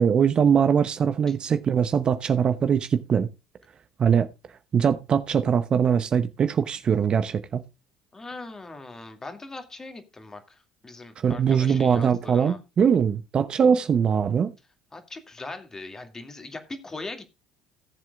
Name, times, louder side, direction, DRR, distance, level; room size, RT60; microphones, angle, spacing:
voice 1, 0.0-3.3 4.0-4.3 4.7-7.6 11.2-14.5, right 7 dB, 40° right, 0.8 m, -22 dB
voice 2, 8.1-12.6 14.9-17.2, left 2 dB, 20° left, 2.3 m, -40 dB
17.5 x 7.5 x 2.4 m
figure-of-eight pair, 60°, 2 cm